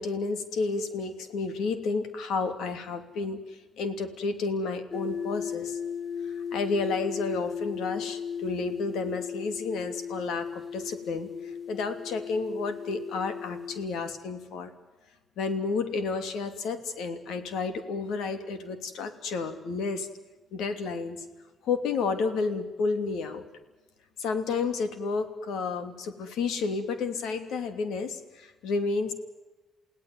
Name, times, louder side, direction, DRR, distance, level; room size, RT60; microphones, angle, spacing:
voice 1, 0.0-5.8 6.2-11.3 11.7-14.7 15.4-20.1 20.5-21.2 21.6-23.4 24.2-29.1, left 4 dB, 80° left, 9 dB, 2.9 m, -31 dB
sound 1, 4.9-13.9, left 7 dB, 20° left, 1.3 m, -36 dB
29.5 x 17.5 x 9.5 m, 1.2 s
cardioid pair, 90°, 0 cm